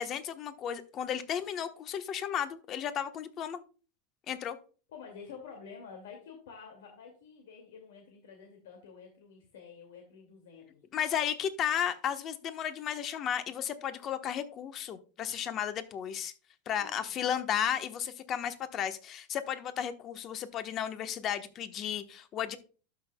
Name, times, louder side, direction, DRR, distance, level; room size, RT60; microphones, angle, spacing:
voice 1, 0.0-3.6 4.3-4.6 10.9-16.3 16.7-22.6, left 9 dB, 35° left, 10 dB, 1.1 m, -34 dB
voice 2, 4.9-10.8 16.7-17.3, left 6 dB, 85° left, 2 dB, 2.2 m, -49 dB
12.0 x 6.3 x 2.3 m, 0.36 s
supercardioid pair, 135°, 0 cm